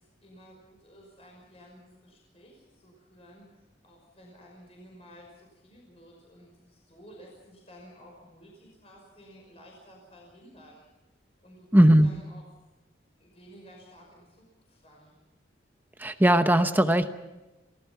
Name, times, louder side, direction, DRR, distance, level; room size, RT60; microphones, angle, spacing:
voice 1, 0.0-10.9 11.4-12.4 13.2-15.2, equal, 35° left, -1 dB, 5.7 m, -53 dB
voice 2, 11.7-12.1 16.0-17.1, right 1 dB, 10° right, 8 dB, 0.8 m, -19 dB
28.5 x 18.5 x 5.9 m, 1.0 s
head